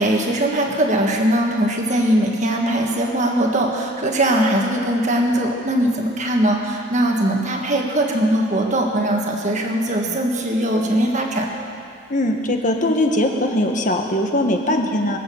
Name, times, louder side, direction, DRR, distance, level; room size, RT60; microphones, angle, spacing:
voice 1, 0.0-11.5, right 1 dB, 35° right, 1 dB, 1.6 m, -20 dB
voice 2, 12.1-15.2, left 1 dB, 35° left, 3 dB, 1.3 m, -20 dB
23.5 x 8.4 x 7.0 m, 2.4 s
head